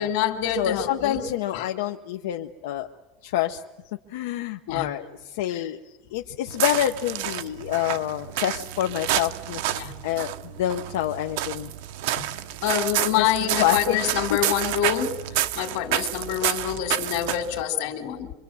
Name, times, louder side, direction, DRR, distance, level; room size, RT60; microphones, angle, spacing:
voice 1, 0.0-1.2 1.5-1.7 4.7-4.9 9.8-9.9 12.6-15.2 15.6-18.3, left 10 dB, 60° left, 7 dB, 2.4 m, -26 dB
voice 2, 0.5-2.9 3.2-3.6 4.1-5.8 6.1-9.6 10.0-11.7 13.1-13.3 13.6-14.0 14.3-14.4, left 12 dB, 80° left, 4 dB, 0.8 m, -27 dB
sound 1, 6.5-17.6, right 13 dB, 60° right, 0.7 m, -29 dB
25.0 x 24.5 x 7.1 m, 1.2 s
supercardioid pair, 180°, 0 cm